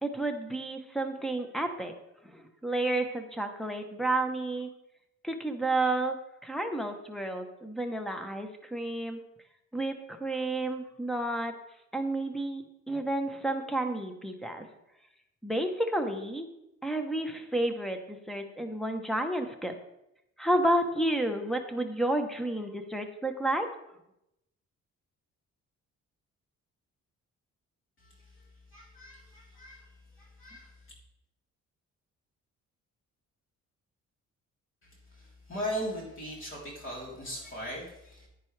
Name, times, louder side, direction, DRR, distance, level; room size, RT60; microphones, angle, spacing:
voice 1, 0.0-1.9 2.2-4.7 5.2-6.2 6.4-9.2 9.7-11.5 11.9-14.7 15.4-16.5 16.8-19.8 20.4-23.7, right 1 dB, ahead, 5 dB, 0.9 m, -31 dB
voice 2, 28.7-29.9 30.2-30.7 35.1-38.3, equal, 45° left, -3 dB, 3.6 m, -38 dB
10.0 x 9.7 x 3.3 m, 0.85 s
cardioid pair, 145°, 29 cm